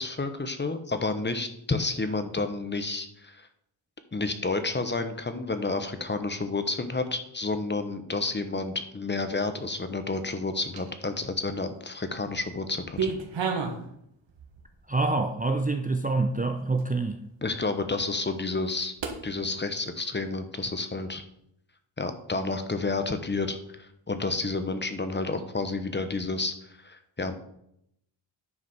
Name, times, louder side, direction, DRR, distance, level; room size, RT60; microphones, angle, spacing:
voice 1, 0.0-3.5 4.1-13.1 17.4-18.9 19.2-21.2 22.0-26.5 26.8-27.3, left 3 dB, 20° left, 1.0 m, -30 dB
pig head hammer, 10.5-11.2 11.7-12.4 12.6-13.9 14.3-14.8 15.4-15.5 16.0-16.1 16.8-16.9 19.0-19.2, right 5 dB, 65° right, 1.7 m, -32 dB
voice 2, 14.9-17.2, right 3 dB, 20° right, 0.6 m, -26 dB
9.7 x 4.9 x 5.8 m
wide cardioid pair, 100°, 48 cm